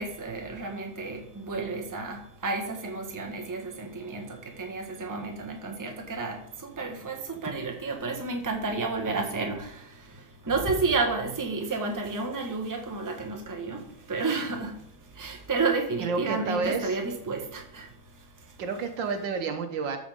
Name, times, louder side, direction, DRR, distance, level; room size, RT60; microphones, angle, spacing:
voice 1, 0.0-4.2 4.6-6.4 6.8-9.7 10.5-13.8 14.1-14.7 15.2-17.9, right 3 dB, 10° right, 2 dB, 1.2 m, -31 dB
voice 2, 16.0-16.9 18.6-20.0, right 5 dB, 65° right, 6 dB, 1.6 m, -30 dB
13.5 x 5.0 x 5.1 m, 0.72 s
omnidirectional pair, 2.2 m